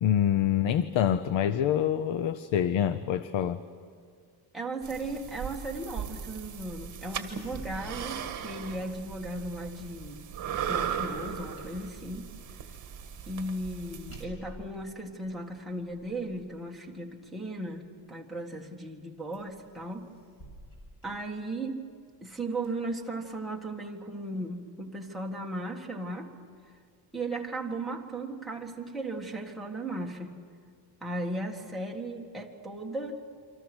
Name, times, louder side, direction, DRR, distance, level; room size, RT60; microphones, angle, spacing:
voice 1, 0.0-3.6, left 10 dB, 65° left, 13 dB, 0.8 m, -26 dB
voice 2, 4.5-10.2 10.6-12.3 13.3-20.1 21.0-21.9 22.2-26.3 27.1-30.4 31.0-33.2, right 2 dB, ahead, -2 dB, 1.7 m, -36 dB
sound 1, 4.8-14.2, right 8 dB, 40° right, 1.8 m, -38 dB
sound 2, 6.9-9.0 9.5-18.1 18.7-19.0 19.3-21.8 22.3-23.3, right 1 dB, 30° left, 7.1 m, -52 dB
29.0 x 25.5 x 6.2 m, 2.1 s
cardioid pair, 175°, 48 cm